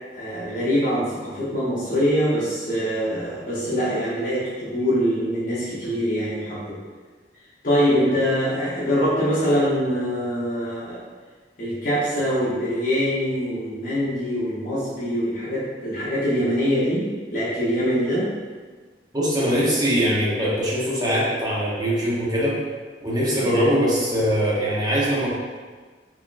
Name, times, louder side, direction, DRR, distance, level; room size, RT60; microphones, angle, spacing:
voice 1, 0.1-6.8 7.6-11.0 11.6-18.3 23.4-23.5, equal, 50° left, -10 dB, 0.9 m, -24 dB
voice 2, 19.1-22.6 23.0-25.3, equal, 20° right, -7 dB, 0.9 m, -22 dB
3.8 x 3.0 x 2.4 m, 1.4 s
head